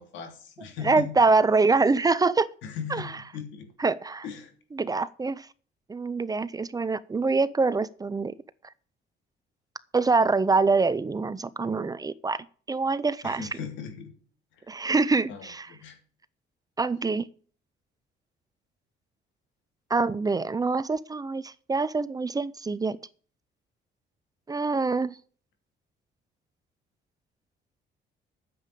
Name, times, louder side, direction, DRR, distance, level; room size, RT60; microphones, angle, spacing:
voice 1, 0.0-1.3 2.6-3.7 4.2-4.5 13.2-14.1 14.6-14.7 15.3-16.0, left 7 dB, 90° left, 3.1 m, -38 dB
voice 2, 0.8-2.5 2.9-3.1 3.8-4.2 4.7-5.5 5.9-8.3 9.9-13.5 14.7-15.7 16.8-17.3 19.9-23.0 24.5-25.1, right 4 dB, 20° right, 0.6 m, -25 dB
9.5 x 7.6 x 6.8 m
cardioid pair, 125°, 19 cm